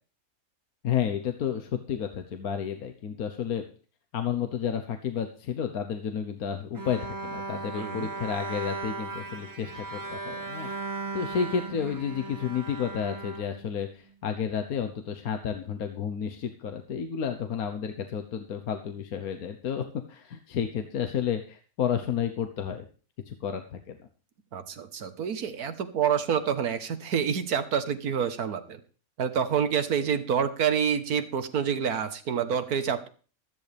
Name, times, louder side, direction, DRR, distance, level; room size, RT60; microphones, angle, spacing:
voice 1, 0.8-3.6 4.1-22.8 23.3-24.0, left 8 dB, 75° left, 6 dB, 1.5 m, -31 dB
Bowed string instrument, 6.7-14.1, right 3 dB, 30° right, 0.3 m, -37 dB
voice 2, 7.8-8.1 24.5-28.8 29.2-33.1, right 7 dB, 85° right, 11 dB, 1.7 m, -27 dB
15.5 x 13.5 x 3.4 m, 0.39 s
omnidirectional pair, 1.5 m